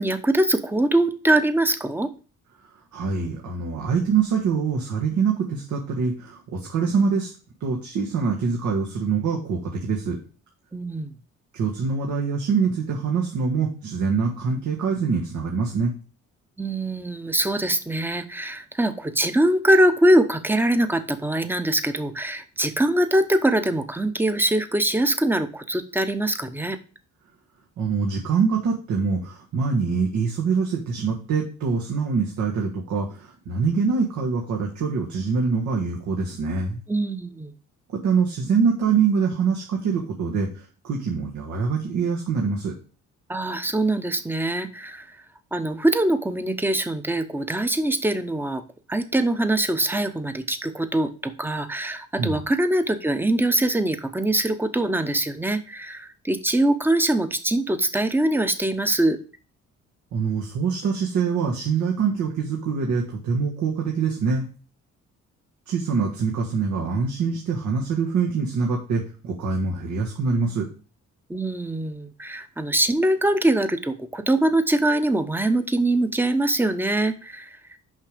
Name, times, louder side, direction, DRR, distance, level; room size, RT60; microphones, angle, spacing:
voice 1, 0.0-2.1 10.7-11.1 16.6-26.8 36.9-37.5 43.3-45.2 45.5-48.6 48.9-59.2 71.3-77.8, right 1 dB, 5° right, 10 dB, 0.8 m, -23 dB
voice 2, 2.6-7.3 7.6-10.2 11.5-15.9 27.8-36.8 37.9-42.7 52.2-52.4 60.1-64.5 65.7-70.7, right 5 dB, 75° right, -1 dB, 1.5 m, -24 dB
6.4 x 5.4 x 5.0 m, 0.37 s
cardioid pair, 90°, 30 cm